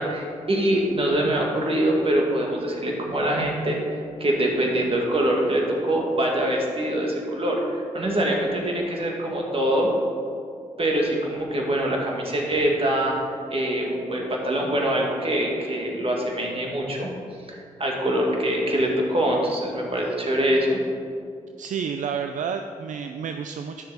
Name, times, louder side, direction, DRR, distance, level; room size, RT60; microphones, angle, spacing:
voice 1, 0.0-9.9 10.8-17.1 17.5-20.8, right 1 dB, 45° right, -1 dB, 2.1 m, -24 dB
voice 2, 21.6-23.9, right 7 dB, 70° right, 7 dB, 0.4 m, -30 dB
10.0 x 6.6 x 4.1 m, 2.3 s
supercardioid pair, 45°, 14 cm